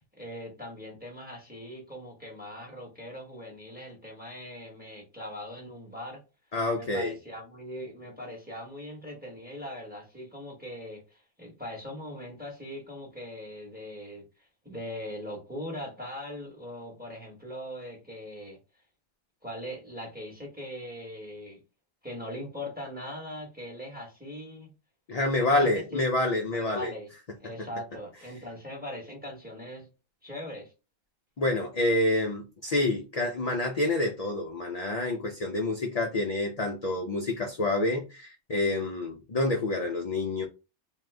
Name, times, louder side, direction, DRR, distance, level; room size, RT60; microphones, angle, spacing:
voice 1, 0.0-6.2 6.7-18.6 19.4-21.6 22.0-24.7 25.4-26.0 26.5-27.1 27.4-29.9 30.2-30.7, left 1 dB, 10° right, 1.1 m, -40 dB
voice 2, 6.5-7.2 25.1-26.9 27.6-27.7 31.4-40.4, left 2 dB, 45° left, 0.5 m, -28 dB
2.7 x 2.4 x 3.3 m
omnidirectional pair, 1.1 m